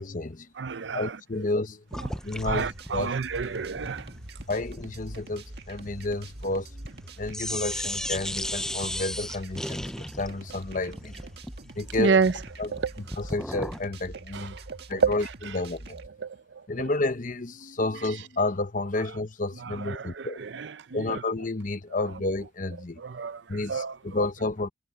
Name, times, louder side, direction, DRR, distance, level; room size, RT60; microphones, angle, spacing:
voice 1, 0.0-0.5 0.9-1.8 2.2-3.1 4.5-6.9 7.2-11.1 11.8-12.2 12.6-12.7 13.0-14.6 14.9-15.3 15.5-16.0 16.7-20.4 20.9-23.0 23.5-24.7, left 2 dB, 50° left, 1.0 m, -30 dB
voice 2, 0.6-1.2 2.4-4.1 12.0-12.3 12.7-12.9 14.3-15.1 16.2-16.4 19.6-21.2 23.0-23.4 23.7-24.0, right 5 dB, 85° right, 0.6 m, -28 dB
sound 1, 1.9-7.0 7.3-13.9, left 1 dB, 5° left, 0.5 m, -36 dB
sound 2, 2.4-16.1, right 1 dB, 65° right, 1.9 m, -44 dB
head